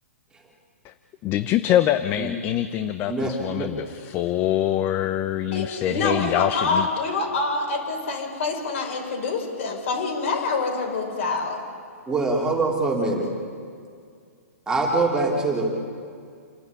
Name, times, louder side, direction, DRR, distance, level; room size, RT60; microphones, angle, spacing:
voice 1, 1.2-6.9, left 12 dB, 25° left, 11 dB, 0.8 m, -24 dB
voice 2, 3.1-3.7 12.1-13.3 14.7-15.6, right 3 dB, 10° right, -1 dB, 3.3 m, -24 dB
voice 3, 5.5-11.6, left 3 dB, 55° left, 2 dB, 6.3 m, -26 dB
28.5 x 12.0 x 9.9 m, 2.2 s
hypercardioid pair, 140°, 8 cm